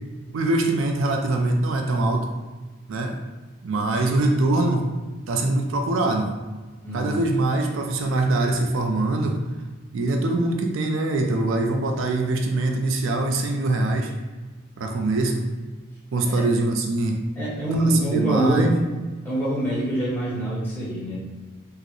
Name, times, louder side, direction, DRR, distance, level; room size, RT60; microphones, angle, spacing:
voice 1, 0.3-2.3 2.9-3.2 3.6-4.9 5.3-6.3 6.9-9.4 9.9-14.1 14.8-15.5 16.1-17.2 17.7-17.8 18.1-18.7, right 2 dB, 65° right, 3 dB, 0.4 m, -23 dB
voice 2, 6.8-7.2 16.2-16.5 17.4-18.8 19.2-21.2, right 1 dB, 10° left, -7 dB, 0.9 m, -24 dB
4.5 x 2.0 x 3.0 m, 1.3 s
head